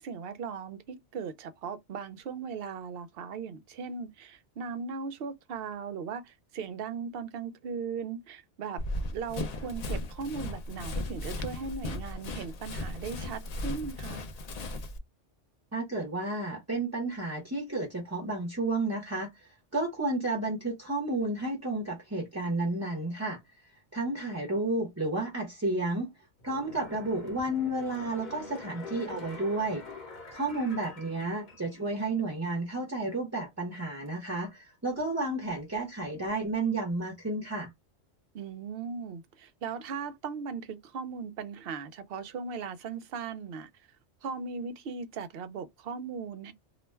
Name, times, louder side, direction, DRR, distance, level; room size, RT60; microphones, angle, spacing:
voice 1, 0.0-8.8 9.1-14.2 38.3-43.7 44.2-46.5, right 5 dB, 65° right, 0.7 m, -38 dB
Run, 8.8-15.0, left 1 dB, 65° left, 0.4 m, -36 dB
voice 2, 15.7-26.1 26.4-29.8 30.3-37.7, right 2 dB, 15° right, 0.6 m, -32 dB
sound 1, 26.4-32.0 32.3-32.4, left 3 dB, 45° left, 0.9 m, -46 dB
2.4 x 2.1 x 3.2 m
omnidirectional pair, 1.2 m